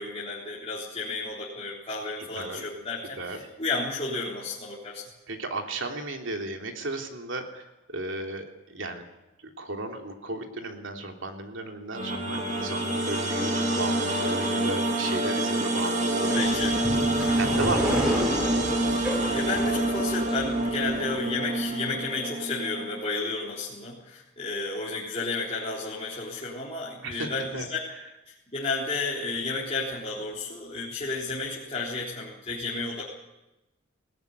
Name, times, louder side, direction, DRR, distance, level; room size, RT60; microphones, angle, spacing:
voice 1, 0.0-5.0 16.3-16.8 17.2-17.4 19.0-27.8 28.3-33.0, left 3 dB, 30° left, -6 dB, 3.9 m, -32 dB
voice 2, 5.3-7.6 7.9-9.0 9.6-16.4 17.3-18.2 27.0-27.7, right 2 dB, 65° right, 4 dB, 3.1 m, -34 dB
Bowed string instrument, 11.9-16.3, left 1 dB, 60° left, 1.8 m, -39 dB
sound 1, 11.9-23.0, right 1 dB, 35° right, 2.8 m, -27 dB
sound 2, 16.2-20.9, equal, 5° right, 4.6 m, -31 dB
20.5 x 17.5 x 9.6 m, 1.0 s
head